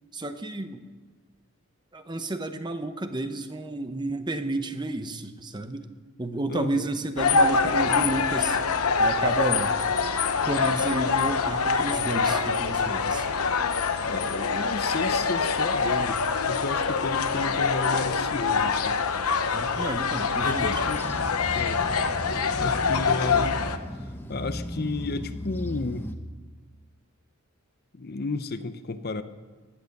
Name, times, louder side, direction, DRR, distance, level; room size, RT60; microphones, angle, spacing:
voice 1, 0.1-0.8 1.9-5.9 6.2-8.6 9.0-9.7 10.5-13.3 19.5-20.8, right 2 dB, 20° right, 9 dB, 0.8 m, -31 dB
voice 2, 6.5-6.9 14.1-16.2 16.5-19.0 20.4-21.0 21.5-21.8 22.6-26.1 27.9-29.2, left 3 dB, 45° left, 11 dB, 0.7 m, -33 dB
sound 1, 7.2-23.8, left 5 dB, 90° left, 1.0 m, -25 dB
sound 2, 20.3-26.1, equal, 10° left, 0.9 m, -36 dB
17.5 x 11.0 x 6.6 m, 1.3 s
head